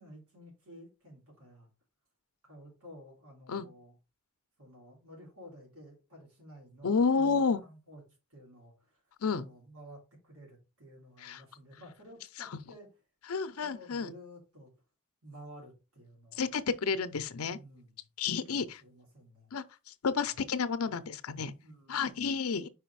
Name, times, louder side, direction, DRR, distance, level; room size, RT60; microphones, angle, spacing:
voice 1, 0.0-1.7 2.4-3.9 4.6-8.0 8.3-9.0 9.3-12.9 13.6-14.7 15.2-16.5 17.4-18.0 18.3-19.5 20.2-20.3 21.6-22.3, equal, 85° right, 3.1 m, -52 dB
voice 2, 6.8-7.6 9.2-9.4 11.2-11.4 13.3-14.1 16.4-17.6 18.2-18.8 19.5-19.6 20.0-21.5 21.9-22.7, left 5 dB, 90° left, 0.6 m, -30 dB
4.9 x 4.9 x 4.6 m
head